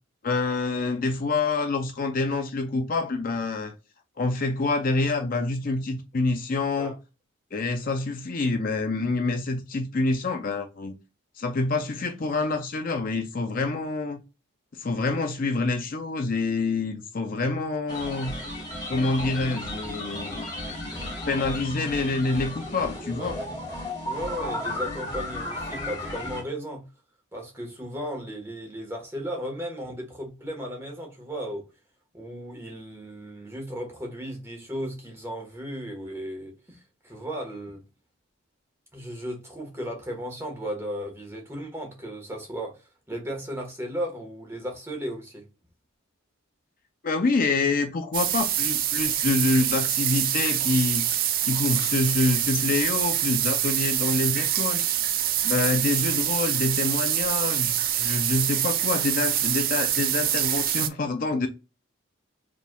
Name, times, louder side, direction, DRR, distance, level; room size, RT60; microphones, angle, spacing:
voice 1, 0.2-3.7 4.2-7.0 7.5-11.0 11.4-14.2 14.7-18.3 18.9-23.4 47.0-54.8 55.4-61.5, left 3 dB, 40° left, 0.5 m, -27 dB
sound 1, 17.9-26.4, left 1 dB, 20° left, 1.4 m, -34 dB
voice 2, 23.2-23.6 24.0-26.8 27.3-31.6 32.1-36.8 37.0-37.8 38.9-45.4, equal, 10° right, 1.3 m, -35 dB
sound 2, 48.1-60.9, right 11 dB, 45° right, 0.4 m, -25 dB
4.9 x 3.4 x 2.2 m
head